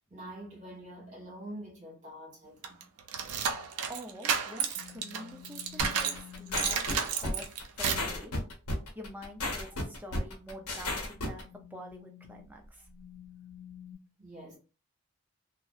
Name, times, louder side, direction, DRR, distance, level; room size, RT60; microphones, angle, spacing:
voice 1, 0.1-2.8 7.1-7.3 13.2-13.3 14.2-14.6, right 1 dB, 35° right, 1.2 m, -46 dB
sound 1, 2.6-6.2 6.5-8.1, right 7 dB, 85° right, 0.4 m, -31 dB
voice 2, 3.9-8.3 9.0-12.9, equal, 10° right, 0.4 m, -46 dB
sound 2, 4.7-6.8 9.9-10.2 11.1-13.9, left 10 dB, 35° left, 1.0 m, -51 dB
sound 3, 5.8-11.4, left 2 dB, 80° left, 0.8 m, -34 dB
2.6 x 2.0 x 2.3 m
head